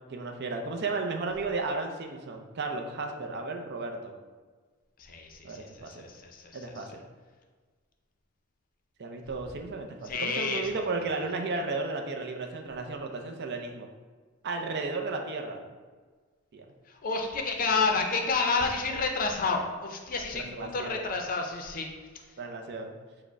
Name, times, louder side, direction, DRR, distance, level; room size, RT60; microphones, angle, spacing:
voice 1, 0.1-4.1 5.4-6.1 6.5-7.0 9.0-13.9 14.4-15.7 16.5-16.6 20.3-21.1 22.4-23.0, right 3 dB, 50° right, 3 dB, 0.5 m, -34 dB
voice 2, 5.0-6.9 10.0-10.7 16.9-21.9, left 4 dB, 40° left, 3 dB, 0.5 m, -30 dB
4.7 x 2.1 x 4.6 m, 1.4 s
head